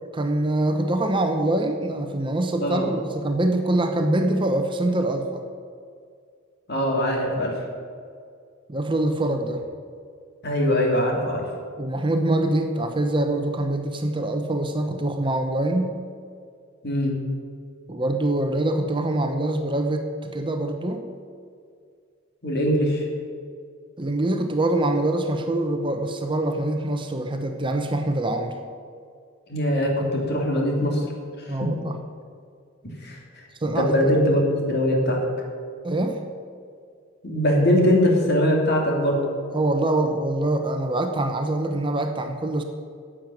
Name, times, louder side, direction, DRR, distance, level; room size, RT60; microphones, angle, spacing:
voice 1, 0.0-5.4 8.7-9.6 11.8-16.0 17.9-21.1 24.0-28.6 31.5-32.0 33.6-34.0 35.8-36.2 39.5-42.6, right 1 dB, 25° right, 5 dB, 0.8 m, -24 dB
voice 2, 6.7-7.5 10.4-11.4 16.8-17.1 22.4-23.1 29.5-31.0 31.4-31.7 33.0-33.4 33.8-35.2 37.2-39.2, equal, 50° left, 0 dB, 2.8 m, -22 dB
11.0 x 7.5 x 9.1 m, 2.2 s
head